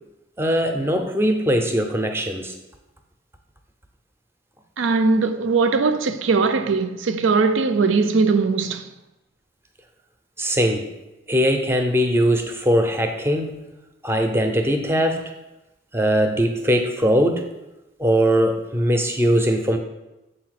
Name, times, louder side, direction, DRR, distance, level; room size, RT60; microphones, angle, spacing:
voice 1, 0.4-2.5 10.4-10.9 11.3-13.7 14.0-15.3 15.9-17.5 18.0-19.8, equal, 10° right, 0.5 m, -20 dB
voice 2, 4.8-8.8, right 4 dB, 75° right, 0.4 m, -20 dB
7.1 x 2.7 x 5.8 m
head